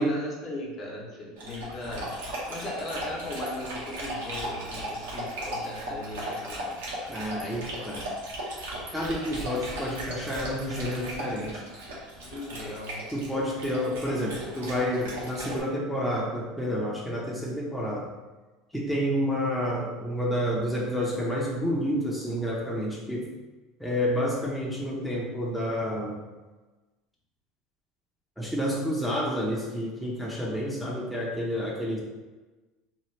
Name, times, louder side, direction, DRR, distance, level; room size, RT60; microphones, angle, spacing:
voice 1, 0.0-2.1 2.5-6.8 12.2-13.0, left 1 dB, 45° left, -2 dB, 0.8 m, -37 dB
Dog, 1.4-15.6, right 1 dB, 90° right, 0.9 m, -36 dB
voice 2, 7.1-8.1 8.9-11.6 13.1-18.1 18.7-23.3 23.8-26.2 28.4-32.0, equal, ahead, -4 dB, 0.6 m, -29 dB
2.9 x 2.3 x 3.1 m, 1.2 s
supercardioid pair, 100°, 0 cm